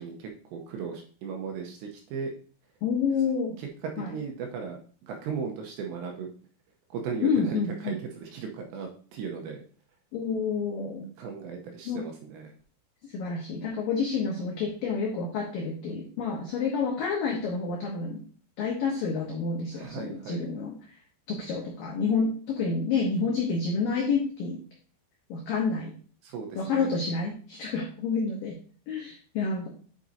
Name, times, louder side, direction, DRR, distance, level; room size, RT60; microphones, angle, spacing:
voice 1, 0.0-2.3 3.6-6.3 6.9-9.6 11.2-12.5 19.7-20.5 26.2-26.9, right 6 dB, 80° right, 2 dB, 2.7 m, -37 dB
voice 2, 2.8-3.5 4.0-4.1 7.2-8.0 10.1-11.1 11.9-12.0 13.0-18.2 18.6-20.8 21.3-24.6 25.3-25.9 26.6-28.5 28.9-29.7, left 5 dB, 85° left, -1 dB, 2.0 m, -29 dB
9.0 x 5.2 x 2.7 m, 0.42 s
omnidirectional pair, 5.6 m